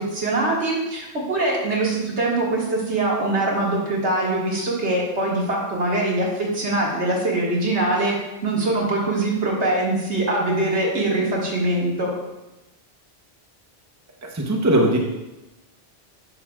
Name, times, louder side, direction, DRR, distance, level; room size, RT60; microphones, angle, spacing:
voice 1, 0.0-8.2 8.4-12.1, right 2 dB, 65° right, -3 dB, 2.0 m, -23 dB
voice 2, 14.2-15.0, right 1 dB, 15° right, 0 dB, 0.7 m, -19 dB
10.5 x 6.2 x 2.3 m, 0.99 s
omnidirectional pair, 1.2 m